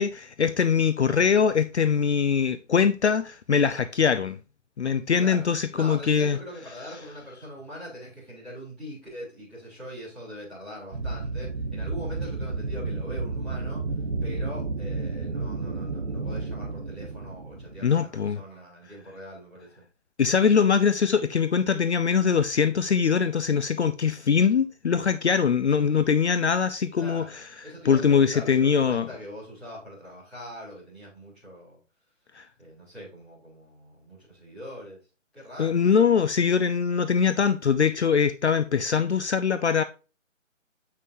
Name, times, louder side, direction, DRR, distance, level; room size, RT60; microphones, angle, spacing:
voice 1, 0.0-4.4 4.8-6.4 17.8-18.4 20.2-27.3 27.8-29.1 32.3-32.5 35.6-39.8, left 6 dB, 60° left, 0.5 m, -22 dB
voice 2, 5.7-13.8 14.2-19.8 26.9-31.8 32.6-35.0 35.3-35.8, equal, ahead, 3.3 m, -42 dB
sound 1, 10.9-18.0, right 3 dB, 50° right, 0.9 m, -32 dB
8.1 x 5.7 x 2.7 m
figure-of-eight pair, 165°, 38 cm